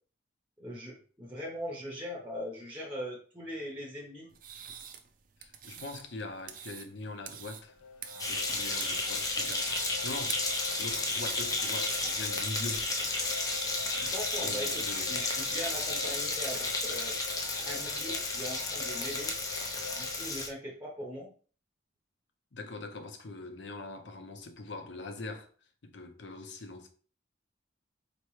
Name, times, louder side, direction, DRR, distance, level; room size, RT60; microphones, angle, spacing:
voice 1, 0.6-4.3 14.0-16.6 16.9-17.1 17.7-19.3 20.0-21.3, equal, 10° right, 0.8 m, -40 dB
sound 1, 4.3-12.7, right 8 dB, 45° right, 0.5 m, -46 dB
voice 2, 5.4-7.8 8.3-9.8 10.0-10.4 10.8-12.9 14.4-15.2 22.5-25.5 25.8-26.9, left 2 dB, 70° left, 0.7 m, -42 dB
sound 2, 7.7-20.3, left 5 dB, 85° left, 0.3 m, -45 dB
sound 3, 8.2-20.5, left 2 dB, 20° left, 0.5 m, -32 dB
4.5 x 3.0 x 3.1 m
head